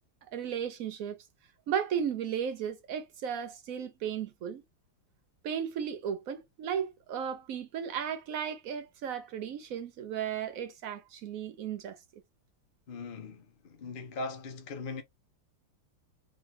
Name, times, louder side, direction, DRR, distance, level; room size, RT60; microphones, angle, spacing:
voice 1, 0.3-1.2 1.7-4.6 5.4-12.0, right 8 dB, 85° right, 0.7 m, -35 dB
voice 2, 12.9-15.0, left 3 dB, 75° left, 0.4 m, -40 dB
3.8 x 3.7 x 2.7 m
omnidirectional pair, 2.3 m